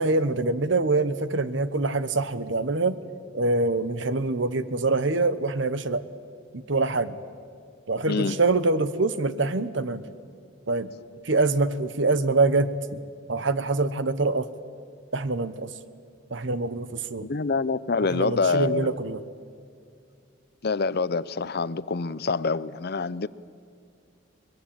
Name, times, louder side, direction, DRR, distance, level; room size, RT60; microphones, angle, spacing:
voice 1, 0.0-3.0 3.3-6.0 6.5-7.2 7.9-10.0 10.7-10.9 11.2-13.0 13.3-14.5 15.1-15.7 16.3-17.3 18.1-19.2, right 3 dB, 65° right, 1.1 m, -25 dB
voice 2, 8.1-8.4 17.2-18.9 20.6-23.3, left 4 dB, 50° left, 0.6 m, -26 dB
22.5 x 22.0 x 8.8 m
head